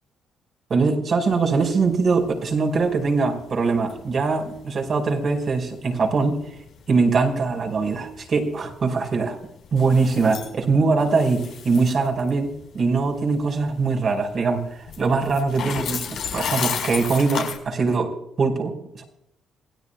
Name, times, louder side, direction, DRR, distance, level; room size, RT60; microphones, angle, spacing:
voice 1, 0.7-6.5 6.9-9.4 9.7-14.6 15.0-19.0, right 4 dB, 50° right, 2 dB, 5.0 m, -22 dB
sound 1, 1.2-17.6, left 7 dB, 70° left, 4.7 m, -35 dB
27.5 x 17.0 x 2.3 m, 0.76 s
cardioid pair, 90°, 0 cm